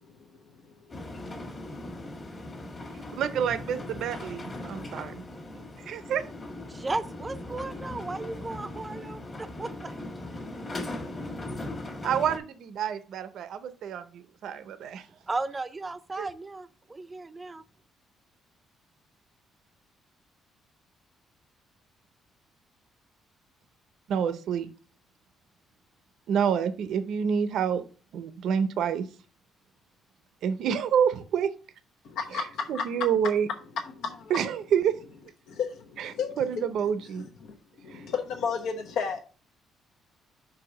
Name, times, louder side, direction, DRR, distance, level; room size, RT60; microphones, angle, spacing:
sound 1, 0.9-12.4, left 1 dB, 25° left, 1.4 m, -39 dB
voice 1, 3.1-5.1 5.9-6.2 12.0-15.1 16.2-16.3 24.1-24.7 26.3-27.8 28.1-29.1 30.4-31.5 32.3-33.5 34.3-35.0 36.0-37.3 37.9-38.0, right 8 dB, 60° right, 0.6 m, -28 dB
voice 2, 6.7-10.0 15.3-17.6, right 3 dB, 15° right, 0.5 m, -35 dB
voice 3, 32.0-32.8 33.9-34.3 35.5-36.3 37.4-37.6 37.8-39.2, left 6 dB, 65° left, 0.9 m, -32 dB
5.7 x 4.8 x 6.4 m
cardioid pair, 170°, 0 cm